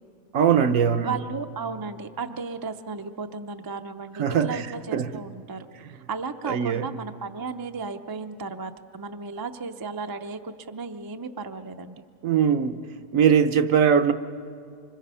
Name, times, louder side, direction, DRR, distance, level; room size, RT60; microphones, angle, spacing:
voice 1, 0.3-1.2 4.2-4.6 4.9-5.2 6.5-6.9 12.2-12.8 13.1-14.1, right 7 dB, 70° right, 8 dB, 1.2 m, -21 dB
voice 2, 1.0-5.7 6.1-12.0, right 4 dB, 30° right, 7 dB, 0.4 m, -34 dB
26.0 x 25.5 x 5.5 m, 2.3 s
omnidirectional pair, 1.5 m